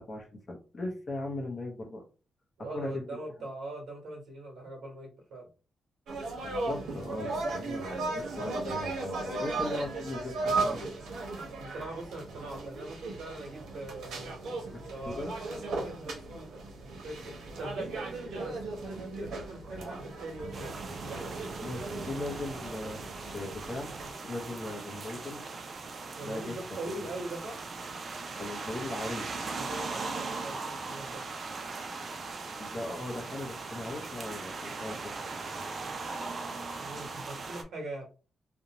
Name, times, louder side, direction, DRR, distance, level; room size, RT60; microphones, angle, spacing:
voice 1, 0.0-2.0 2.7-3.1 6.4-10.9 14.7-15.3 21.6-23.0 23.3-23.9 24.2-25.5 26.2-26.5 27.0-27.1 28.4-29.2 32.6-35.1, left 2 dB, 30° left, 2 dB, 0.6 m, -38 dB
voice 2, 2.6-5.5 11.5-14.2 14.9-20.7 26.2-27.6 29.6-31.2 36.8-38.1, right 2 dB, 65° right, 0 dB, 1.1 m, -42 dB
sound 1, 6.1-24.1, right 3 dB, 85° right, 0.8 m, -36 dB
sound 2, 20.5-37.6, right 4 dB, 35° right, 0.4 m, -39 dB
2.5 x 2.1 x 2.9 m, 0.35 s
wide cardioid pair, 170°, 0 cm